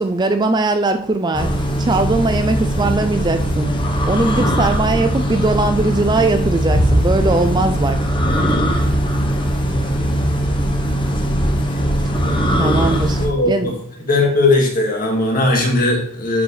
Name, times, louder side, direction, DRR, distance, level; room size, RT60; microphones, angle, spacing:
voice 1, 0.0-8.1 12.6-13.2 13.5-13.7, right 2 dB, 20° right, 8 dB, 0.4 m, -20 dB
sound 1, 1.3-13.3, equal, 25° left, 1.0 m, -19 dB
voice 2, 13.2-13.7 14.1-16.4, left 2 dB, 40° left, 0 dB, 2.1 m, -18 dB
11.0 x 4.9 x 3.3 m, 0.73 s
head